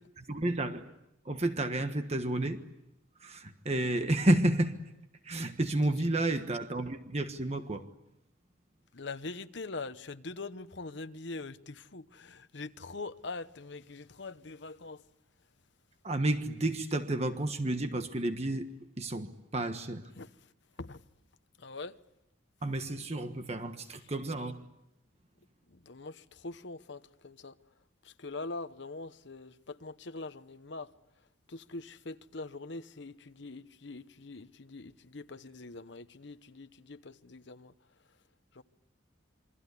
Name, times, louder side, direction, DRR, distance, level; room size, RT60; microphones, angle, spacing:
voice 1, 0.2-0.9 1.2-2.6 3.2-4.8 5.2-7.8 16.0-20.0 22.6-24.6, right 1 dB, 30° right, 1.3 m, -31 dB
voice 2, 8.9-15.0 20.2-20.3 20.8-21.0 21.6-22.0 25.7-27.6 28.0-30.9 31.5-37.7 38.5-38.6, left 3 dB, 60° left, 1.0 m, -43 dB
28.0 x 23.5 x 8.3 m
head